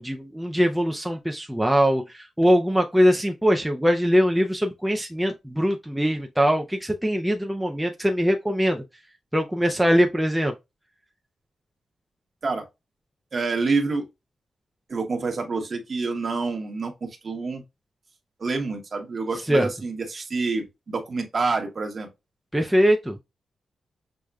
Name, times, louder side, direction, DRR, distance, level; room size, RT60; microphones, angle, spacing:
voice 1, 0.0-8.8 9.3-10.5 19.5-19.7 22.5-23.2, equal, 5° right, 0.4 m, -22 dB
voice 2, 13.3-14.1 14.9-17.6 18.4-22.1, right 4 dB, 40° right, 1.0 m, -27 dB
6.2 x 2.1 x 2.3 m
wide cardioid pair, 125°, 0 cm